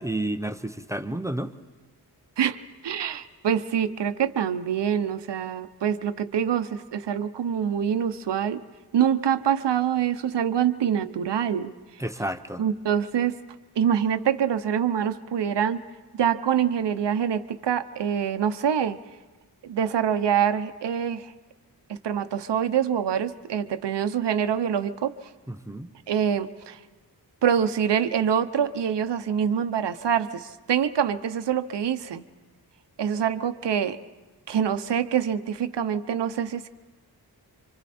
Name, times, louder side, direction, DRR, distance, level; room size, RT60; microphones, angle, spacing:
voice 1, 0.0-1.5 12.0-12.6 25.5-25.9, right 1 dB, 5° right, 9 dB, 0.7 m, -31 dB
voice 2, 2.4-8.6 8.9-11.7 12.6-13.3 13.8-15.8 16.1-19.0 19.6-21.3 21.9-25.2 26.1-26.8 27.4-32.2 33.0-34.0 34.5-36.7, right 8 dB, 90° right, 10 dB, 0.9 m, -25 dB
27.5 x 25.5 x 4.3 m, 1.3 s
wide cardioid pair, 135°, 41 cm